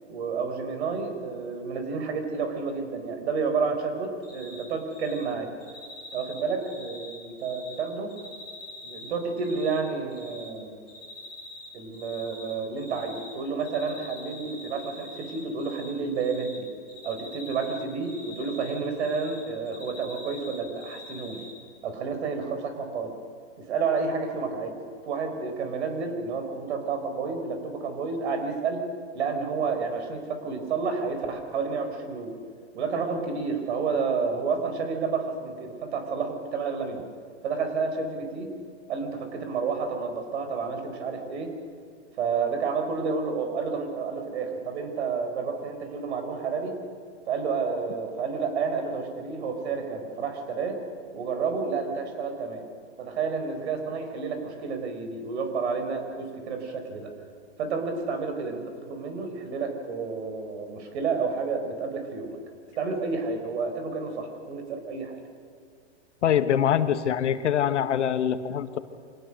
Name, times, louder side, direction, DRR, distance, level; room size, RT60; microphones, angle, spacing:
voice 1, 0.1-5.5 6.1-8.1 8.8-10.9 11.7-16.7 17.0-21.4 21.8-23.1 23.6-24.8 25.0-28.8 29.1-32.4 32.7-37.0 37.4-38.5 38.9-41.5 42.2-46.7 47.3-50.8 51.1-52.6 53.0-57.1 57.6-62.4 62.8-65.2, right 5 dB, 65° right, 6 dB, 4.4 m, -30 dB
Cricket, 4.2-4.6 4.9-5.2 5.6-7.8 8.1-9.8 10.1-10.5 10.9-11.7 11.9-13.3 13.6-15.9 16.1-16.6 16.9-19.4 19.6-21.5, left 3 dB, 15° right, 7.1 m, -44 dB
voice 2, 66.2-68.8, left 9 dB, 80° left, 11 dB, 1.5 m, -24 dB
25.0 x 18.0 x 6.5 m, 2.2 s
hypercardioid pair, 135°, 35 cm